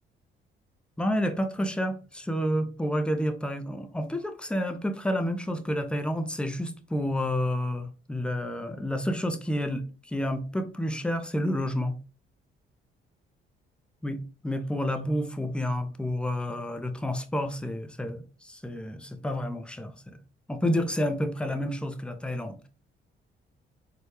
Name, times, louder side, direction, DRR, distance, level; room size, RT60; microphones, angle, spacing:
voice 1, 1.0-12.0 14.0-20.2 20.5-22.6, equal, 5° left, 0.5 m, -30 dB
4.1 x 2.2 x 3.2 m
cardioid pair, 90°, 20 cm